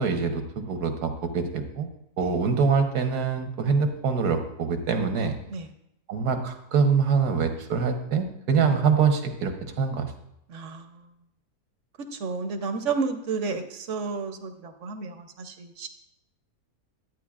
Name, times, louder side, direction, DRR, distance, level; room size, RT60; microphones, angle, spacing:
voice 1, 0.0-1.9 2.2-5.4 6.1-10.1, right 5 dB, 80° right, 6 dB, 1.5 m, -24 dB
voice 2, 10.5-11.1 12.0-15.9, right 4 dB, 60° right, 7 dB, 1.0 m, -32 dB
12.5 x 9.0 x 2.4 m, 0.79 s
omnidirectional pair, 1.6 m